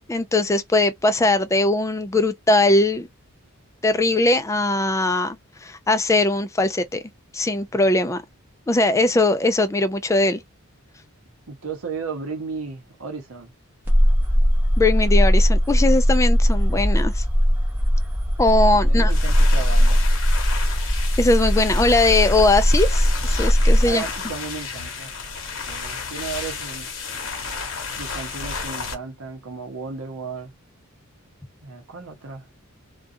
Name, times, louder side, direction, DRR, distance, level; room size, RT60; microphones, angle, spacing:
voice 1, 0.0-3.1 3.8-7.0 7.3-8.2 8.7-10.4 14.8-17.2 18.4-19.1 21.2-24.0, left 2 dB, 15° left, 0.3 m, -20 dB
voice 2, 11.5-13.5 18.8-20.1 23.8-25.2 25.7-26.9 28.0-30.5 31.6-32.5, right 5 dB, 70° right, 0.8 m, -34 dB
sound 1, 13.9-23.9, equal, 10° right, 0.7 m, -19 dB
sound 2, 19.0-28.9, left 4 dB, 60° left, 0.9 m, -32 dB
2.4 x 2.3 x 2.6 m
head